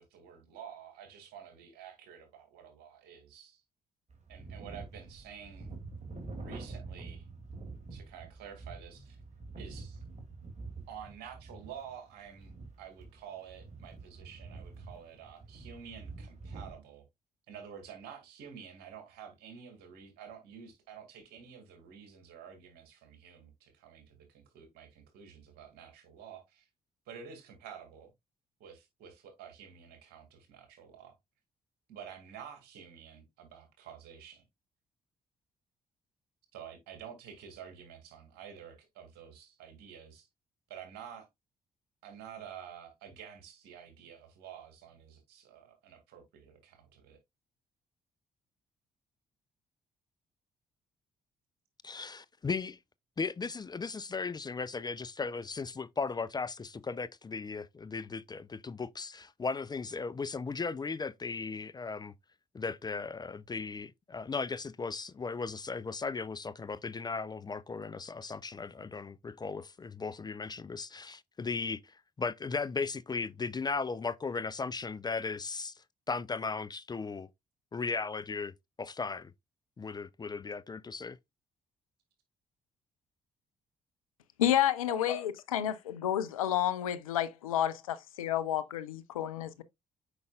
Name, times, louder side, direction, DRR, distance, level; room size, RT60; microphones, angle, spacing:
voice 1, 0.0-3.6 4.3-5.7 6.4-7.3 7.9-9.2 9.6-10.0 10.9-17.0 17.5-26.7 27.1-28.1 28.6-31.2 31.9-34.4 36.5-40.3 40.7-41.3 42.0-47.2 84.9-85.0, right 8 dB, 70° right, 2.1 m, -49 dB
sound 1, 4.1-16.7, right 3 dB, 40° right, 2.5 m, -46 dB
voice 2, 51.8-52.8 53.2-62.1 62.5-77.3 77.7-79.3 79.8-81.2, left 4 dB, 25° left, 0.4 m, -37 dB
voice 3, 84.4-89.6, left 11 dB, 85° left, 0.5 m, -30 dB
7.9 x 5.3 x 2.3 m
hypercardioid pair, 45°, 17 cm